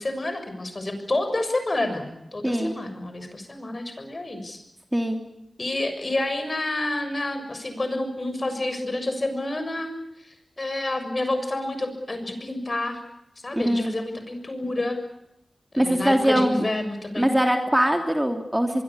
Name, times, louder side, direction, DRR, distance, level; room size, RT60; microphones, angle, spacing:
voice 1, 0.0-4.6 5.6-13.0 13.4-15.0 15.7-17.3, left 2 dB, 40° left, 8 dB, 6.8 m, -29 dB
voice 2, 2.4-2.8 4.9-5.2 13.5-13.9 15.8-16.6 17.2-18.8, equal, 10° right, 4 dB, 3.2 m, -22 dB
24.0 x 24.0 x 8.6 m, 0.85 s
wide cardioid pair, 65°, 0 cm